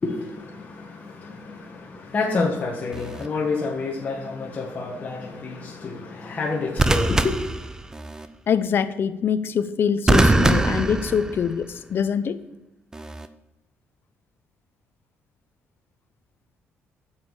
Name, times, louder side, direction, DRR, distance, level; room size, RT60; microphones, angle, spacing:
voice 1, 0.0-7.4, left 3 dB, 35° left, 1.7 m, -28 dB
sound 1, 2.9-3.3 6.8-8.3 10.1-11.7 12.9-13.3, right 2 dB, 15° right, 0.6 m, -22 dB
voice 2, 8.5-12.4, left 7 dB, 50° left, 0.7 m, -24 dB
9.5 x 7.4 x 6.5 m
cardioid pair, 105°, 5 cm